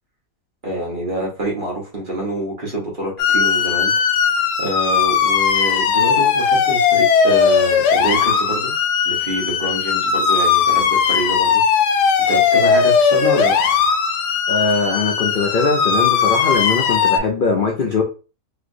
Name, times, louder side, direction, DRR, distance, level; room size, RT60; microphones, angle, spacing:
voice 1, 0.6-4.1 4.6-8.7 9.0-11.6 12.3-13.5, right 1 dB, 35° right, -3 dB, 1.2 m, -26 dB
sound 1, 3.2-17.2, left 6 dB, 85° left, 1.2 m, -17 dB
voice 2, 14.5-18.0, left 4 dB, 60° left, 0 dB, 0.5 m, -20 dB
3.0 x 3.0 x 2.6 m, 0.32 s
omnidirectional pair, 1.7 m